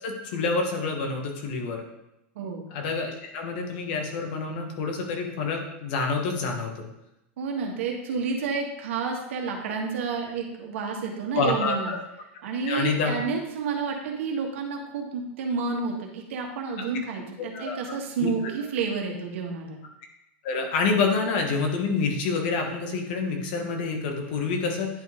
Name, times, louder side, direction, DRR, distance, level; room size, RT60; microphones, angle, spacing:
voice 1, 0.0-1.8 2.7-6.9 11.3-12.0 12.6-13.2 16.8-16.9 17.4-17.8 18.2-18.3 20.4-24.9, left 4 dB, 50° left, 2 dB, 1.4 m, -27 dB
voice 2, 2.4-2.7 7.4-11.9 12.4-19.8, right 5 dB, 75° right, 1 dB, 1.6 m, -30 dB
10.5 x 3.9 x 3.8 m, 0.88 s
supercardioid pair, 170°, 7 cm